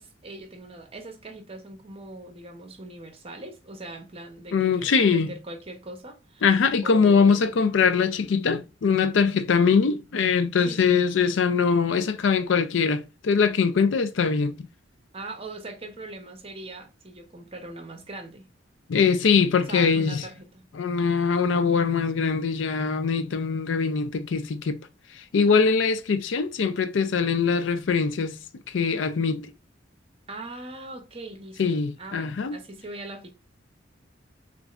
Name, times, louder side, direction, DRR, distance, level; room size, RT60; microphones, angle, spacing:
voice 1, 0.0-6.5 6.8-7.7 10.6-11.0 15.1-18.5 19.6-20.6 21.0-21.9 30.3-33.3, right 2 dB, 30° right, 0.8 m, -41 dB
voice 2, 4.5-5.3 6.4-14.7 18.9-20.2 20.8-24.8 25.3-28.3 28.7-29.5 31.6-32.6, left 5 dB, 85° left, 0.4 m, -22 dB
6.1 x 2.5 x 2.4 m
head